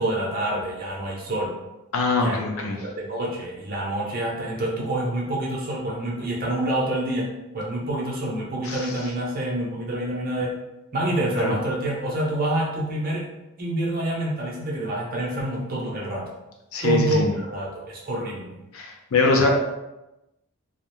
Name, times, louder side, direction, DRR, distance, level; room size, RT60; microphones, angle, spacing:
voice 1, 0.0-1.6 2.2-2.4 2.8-7.3 7.5-10.5 10.9-13.3 13.6-16.2 16.8-18.6, right 1 dB, 40° right, -3 dB, 0.6 m, -27 dB
voice 2, 1.9-2.8 8.6-8.9 11.4-11.5 16.7-17.3 18.7-19.5, left 3 dB, 70° left, 1 dB, 0.5 m, -23 dB
2.3 x 2.1 x 2.9 m, 0.97 s
head